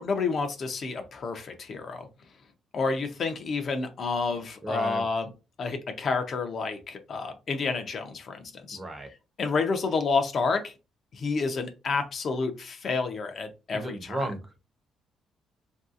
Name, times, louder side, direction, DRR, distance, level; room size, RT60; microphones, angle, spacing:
voice 1, 0.0-2.1 2.7-5.3 5.6-8.8 9.4-10.7 11.1-14.2, left 4 dB, 40° left, 7 dB, 0.4 m, -29 dB
voice 2, 4.6-5.0 8.7-9.1 13.7-14.4, right 1 dB, 15° right, 6 dB, 0.5 m, -33 dB
3.0 x 2.6 x 2.4 m, 0.29 s
cardioid pair, 170°, 0 cm